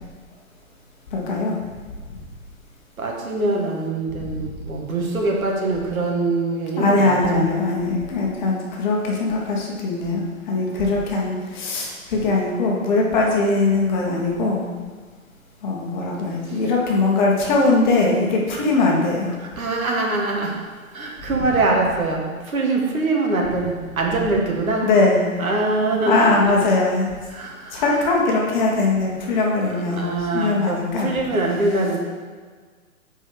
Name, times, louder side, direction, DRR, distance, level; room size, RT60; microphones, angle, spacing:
voice 1, 1.1-1.6 6.8-14.7 15.6-19.3 24.8-25.3 26.1-27.1 27.7-30.1 30.3-31.1, left 3 dB, 30° left, -2 dB, 1.3 m, -20 dB
voice 2, 3.0-7.5 10.7-10.9 16.5-16.6 19.4-20.6 20.9-24.9 25.4-26.5 27.3-27.8 29.9-32.0, right 2 dB, 75° right, -1 dB, 1.7 m, -23 dB
7.5 x 4.6 x 4.8 m, 1.5 s
hypercardioid pair, 140°, 43 cm